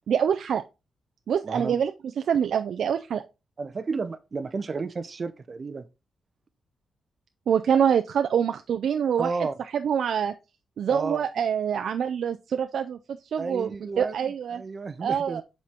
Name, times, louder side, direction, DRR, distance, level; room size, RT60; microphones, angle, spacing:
voice 1, 0.1-0.6 1.3-1.9 2.2-3.2 7.5-9.3 9.7-10.3 10.8-13.0 13.3-14.6 15.0-15.4, right 8 dB, 70° right, 0.4 m, -25 dB
voice 2, 1.4-1.8 3.6-5.9 9.2-9.5 10.9-11.2 13.4-15.4, right 4 dB, 35° right, 0.7 m, -32 dB
7.3 x 4.4 x 3.5 m
cardioid pair, 115°, 0 cm